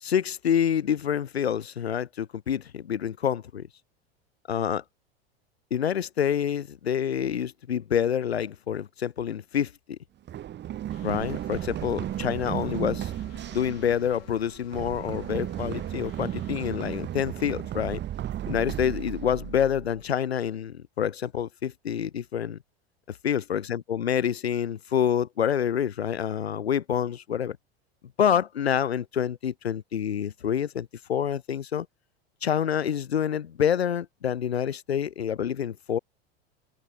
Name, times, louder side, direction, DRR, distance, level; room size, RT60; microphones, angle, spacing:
voice 1, 0.0-3.7 4.5-4.8 5.7-10.0 11.0-13.1 13.5-18.0 18.5-22.6 23.1-27.6 28.2-31.9 32.4-36.0, left 9 dB, 85° left, 1.9 m, -27 dB
Run, 10.3-20.0, right 12 dB, 35° right, 2.9 m, -34 dB
sound 1, 10.9-17.1, left 29 dB, 55° left, 5.4 m, -55 dB
open air
hypercardioid pair, 95°, 31 cm